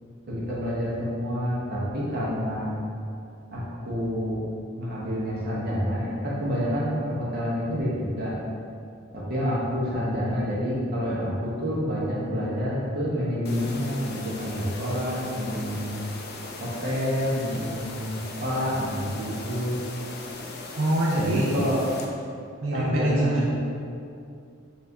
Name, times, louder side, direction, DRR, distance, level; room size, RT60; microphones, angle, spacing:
voice 1, 0.3-2.7 3.5-4.4 4.8-8.4 9.1-15.9 16.6-19.8 21.1-21.8 22.7-23.5, equal, 50° right, -7 dB, 1.1 m, -28 dB
sound 1, 13.4-22.1, left 2 dB, 50° left, 0.4 m, -39 dB
voice 2, 20.8-21.5 22.6-23.5, right 1 dB, 85° right, -5 dB, 0.5 m, -24 dB
4.3 x 2.7 x 3.5 m, 2.4 s
head